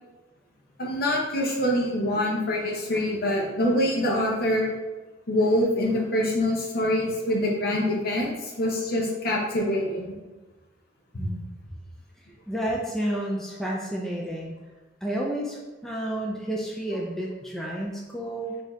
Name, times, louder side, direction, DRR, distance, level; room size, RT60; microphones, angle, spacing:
voice 1, 0.8-4.7 5.3-10.1, left 1 dB, 55° left, -2 dB, 1.0 m, -25 dB
voice 2, 12.5-14.6 15.0-18.5, right 1 dB, 5° left, -3 dB, 0.4 m, -30 dB
5.1 x 2.8 x 3.7 m, 1.2 s
head